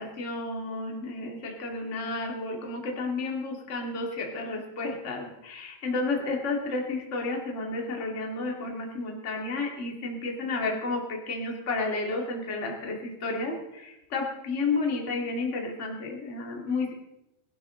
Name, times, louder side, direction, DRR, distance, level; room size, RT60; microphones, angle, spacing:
voice 1, 0.0-16.9, left 3 dB, 25° left, 0 dB, 1.8 m, -31 dB
21.0 x 12.0 x 3.8 m, 0.90 s
omnidirectional pair, 4.7 m